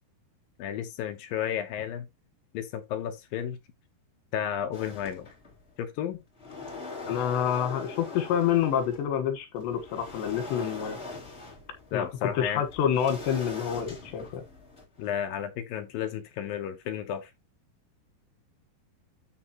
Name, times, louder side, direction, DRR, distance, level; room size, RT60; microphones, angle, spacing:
voice 1, 0.6-2.1 2.5-3.6 4.3-5.3 5.8-6.2 11.9-12.6 15.0-17.3, left 9 dB, 70° left, 2.4 m, -32 dB
sound 1, 4.7-5.7 6.1-9.1 9.6-15.1, left 3 dB, 15° left, 3.2 m, -42 dB
voice 2, 7.1-11.0 11.9-14.4, left 9 dB, 85° left, 3.6 m, -28 dB
13.0 x 4.6 x 3.0 m
omnidirectional pair, 4.9 m